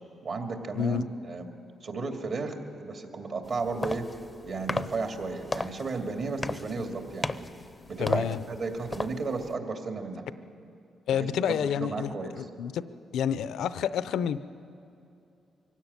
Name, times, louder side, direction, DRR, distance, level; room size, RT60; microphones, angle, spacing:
voice 1, 0.2-1.5 1.8-4.1 4.4-7.5 7.9-10.2 11.1-12.5, right 3 dB, 55° right, 3 dB, 2.5 m, -34 dB
sound 1, 3.4-9.5, left 2 dB, 20° left, 0.6 m, -36 dB
voice 2, 8.0-8.4 11.1-12.8 13.1-14.4, left 9 dB, 85° left, 14 dB, 0.6 m, -29 dB
23.0 x 16.5 x 9.7 m, 2.6 s
cardioid pair, 110°, 0 cm